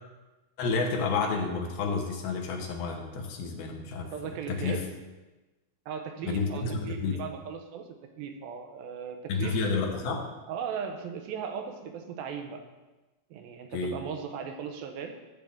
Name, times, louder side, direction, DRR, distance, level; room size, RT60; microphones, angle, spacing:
voice 1, 0.6-4.1 4.5-4.8 6.2-7.2 9.3-10.2 13.7-14.0, left 4 dB, 80° left, 2 dB, 3.0 m, -30 dB
voice 2, 4.1-4.9 5.9-9.6 10.5-12.7 13.3-15.1, right 7 dB, 80° right, 5 dB, 2.5 m, -37 dB
12.5 x 7.5 x 3.6 m, 1.1 s
omnidirectional pair, 4.4 m